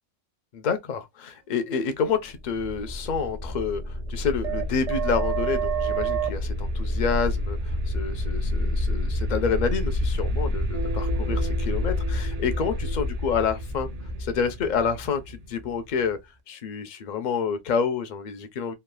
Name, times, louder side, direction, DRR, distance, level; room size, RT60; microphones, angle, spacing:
voice 1, 0.5-13.9 14.2-16.2 16.5-18.7, left 6 dB, 55° left, 0.5 m, -28 dB
sound 1, 2.4-16.1, equal, 50° right, 0.4 m, -28 dB
3.1 x 2.4 x 2.2 m
omnidirectional pair, 1.3 m